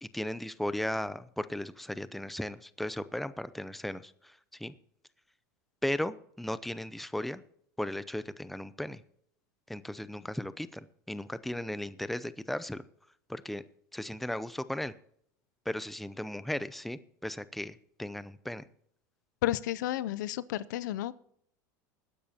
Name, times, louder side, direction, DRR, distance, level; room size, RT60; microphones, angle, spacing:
voice 1, 0.0-4.7 5.8-7.4 7.8-9.0 9.7-12.8 13.3-13.6 13.9-14.9 15.7-18.7, left 1 dB, ahead, 15 dB, 0.5 m, -36 dB
voice 2, 19.4-21.1, left 13 dB, 80° left, 18 dB, 0.5 m, -32 dB
21.0 x 10.5 x 2.9 m, 0.68 s
supercardioid pair, 105°, 10 cm